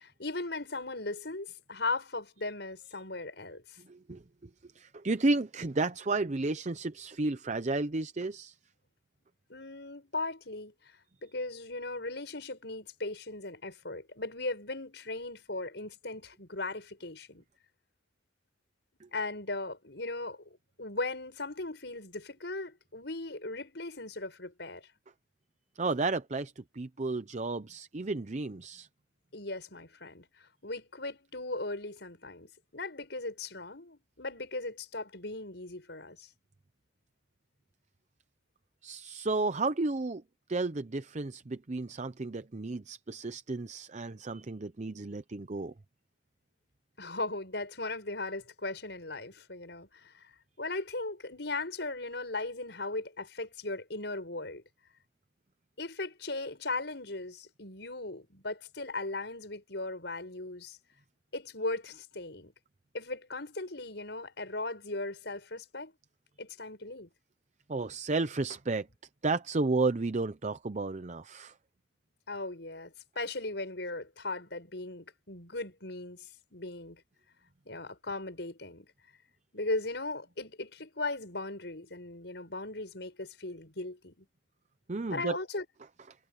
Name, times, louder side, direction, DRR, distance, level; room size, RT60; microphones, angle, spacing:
voice 1, 0.0-3.8 9.5-10.9 11.2-17.4 19.1-24.8 29.3-36.3 47.0-50.3 50.6-54.6 55.8-60.8 61.3-62.5 62.9-65.9 66.4-67.1 72.3-77.0 77.7-78.9 79.5-84.3 85.1-85.7, left 2 dB, 65° left, 7.0 m, -38 dB
voice 2, 3.9-4.5 4.7-8.5 19.0-19.1 25.8-28.9 38.8-40.2 40.5-45.7 67.7-68.9 69.2-71.5 84.9-85.4, right 3 dB, 40° right, 0.6 m, -32 dB
head